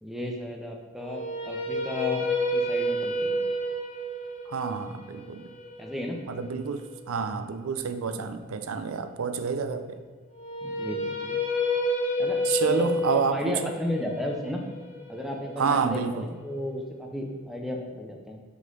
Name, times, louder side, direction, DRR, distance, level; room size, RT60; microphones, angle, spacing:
voice 1, 0.0-3.4 5.8-6.2 10.6-11.4 12.2-14.6 15.1-18.4, left 1 dB, ahead, 1 dB, 0.6 m, -34 dB
sound 1, 1.0-7.1 10.3-16.4, left 1 dB, 30° left, 1.0 m, -30 dB
voice 2, 4.5-5.5 6.3-10.0 12.4-13.7 15.6-16.3, right 5 dB, 80° right, 9 dB, 0.5 m, -29 dB
6.0 x 3.8 x 5.4 m, 1.5 s
head